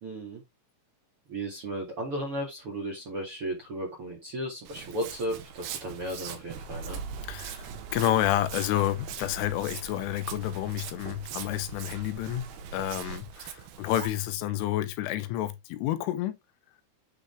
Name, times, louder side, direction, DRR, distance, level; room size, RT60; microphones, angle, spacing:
voice 1, 0.0-0.4 1.3-7.0, right 1 dB, 45° right, 1.9 m, -35 dB
Walk footsteps, 4.6-14.1, right 10 dB, 70° right, 2.6 m, -43 dB
sound 1, 6.5-13.2, right 5 dB, 90° right, 4.1 m, -43 dB
voice 2, 7.3-12.5 12.7-16.4, left 13 dB, 85° left, 3.3 m, -29 dB
10.0 x 4.0 x 3.5 m
omnidirectional pair, 5.6 m